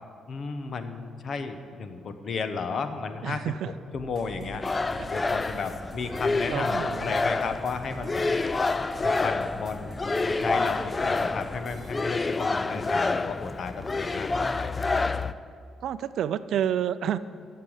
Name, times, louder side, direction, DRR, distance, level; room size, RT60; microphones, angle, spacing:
voice 1, 0.3-3.4 3.9-4.7 5.1-8.3 9.0-10.0 10.2-14.8, left 5 dB, 55° left, 9 dB, 1.0 m, -34 dB
voice 2, 3.2-3.7 5.0-5.1 6.5-7.1 15.3-15.4 15.8-17.2, right 10 dB, 75° right, 14 dB, 0.4 m, -29 dB
sound 1, 3.9-11.9, right 2 dB, 40° right, 1.1 m, -47 dB
sound 2, 4.6-15.3, left 3 dB, 25° left, 0.4 m, -28 dB
12.0 x 6.7 x 7.9 m, 2.3 s
cardioid pair, 90°, 0 cm